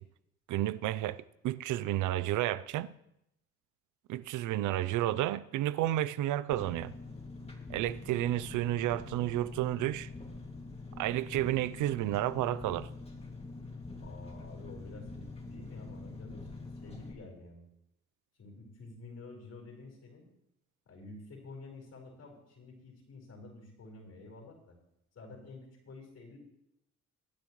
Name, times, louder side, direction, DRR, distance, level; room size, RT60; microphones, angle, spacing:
voice 1, 0.5-2.9 4.1-6.9 7.7-10.1 11.0-12.9, right 14 dB, 80° right, 0.5 m, -31 dB
Engine, 6.5-17.1, left 3 dB, 20° left, 2.2 m, -45 dB
voice 2, 14.0-17.6 18.4-20.2 20.9-24.7 25.1-26.4, left 3 dB, 55° left, 4.5 m, -50 dB
24.0 x 8.3 x 3.1 m
cardioid pair, 90°, 30 cm